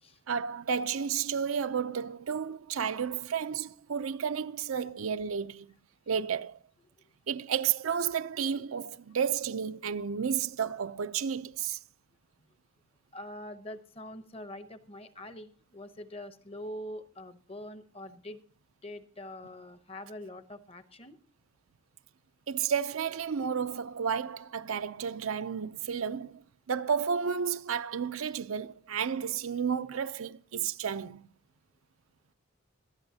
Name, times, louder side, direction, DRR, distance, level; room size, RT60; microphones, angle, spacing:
voice 1, 0.3-5.7 6.1-6.6 7.3-11.8 22.5-26.4 26.7-31.2, right 7 dB, 80° right, 0.5 m, -32 dB
voice 2, 13.1-18.4 18.8-21.2, left 1 dB, 25° left, 0.7 m, -44 dB
19.5 x 13.0 x 2.8 m
head